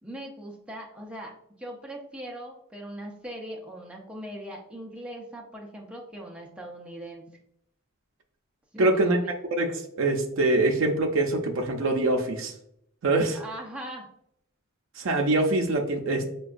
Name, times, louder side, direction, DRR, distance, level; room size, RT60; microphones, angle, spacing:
voice 1, 0.0-7.2 8.7-9.3 13.3-14.1, right 1 dB, 5° right, -1 dB, 0.5 m, -40 dB
voice 2, 8.8-9.2 9.5-12.5 13.0-13.4 15.0-16.3, right 2 dB, 65° right, 2 dB, 0.5 m, -24 dB
4.6 x 2.2 x 2.4 m, 0.72 s
head